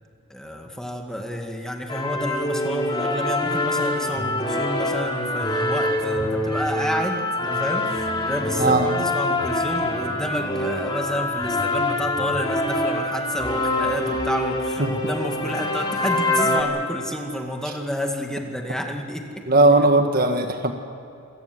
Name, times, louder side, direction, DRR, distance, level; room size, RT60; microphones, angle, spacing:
voice 1, 0.3-19.5, equal, 5° left, 2 dB, 2.1 m, -30 dB
sound 1, 1.9-16.6, left 2 dB, 20° left, 3.3 m, -25 dB
voice 2, 8.6-9.0 14.8-14.9 19.5-20.7, right 2 dB, 45° right, 5 dB, 1.6 m, -18 dB
27.0 x 18.0 x 8.0 m, 2.6 s
head